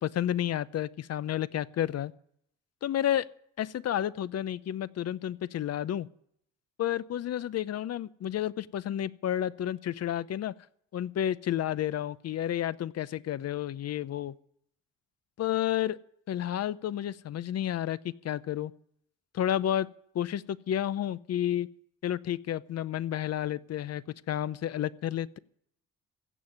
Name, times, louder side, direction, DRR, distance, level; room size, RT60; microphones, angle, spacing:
voice 1, 0.0-2.1 2.8-3.3 3.6-6.1 6.8-10.5 10.9-14.3 15.4-16.0 16.3-18.7 19.3-19.9 20.1-21.7 22.0-25.4, left 11 dB, 55° left, 17 dB, 0.7 m, -31 dB
15.5 x 7.3 x 9.4 m, 0.70 s
cardioid pair, 90°, 30 cm